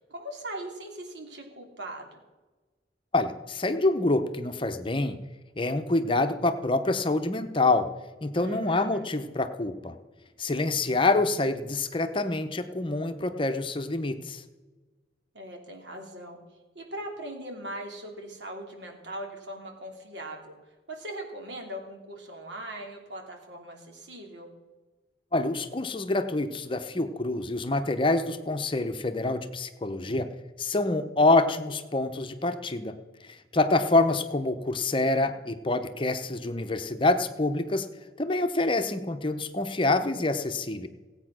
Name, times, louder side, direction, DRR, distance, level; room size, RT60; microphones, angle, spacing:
voice 1, 0.0-2.2 8.4-9.1 15.3-16.4 16.7-20.5 20.9-24.5, right 1 dB, 90° right, 2 dB, 3.0 m, -40 dB
voice 2, 3.1-5.2 5.6-7.9 8.2-9.9 10.4-14.4 25.3-30.3 30.6-32.9 33.3-37.9 38.2-40.9, left 2 dB, 30° left, 9 dB, 0.8 m, -26 dB
16.5 x 8.9 x 6.1 m, 1.2 s
head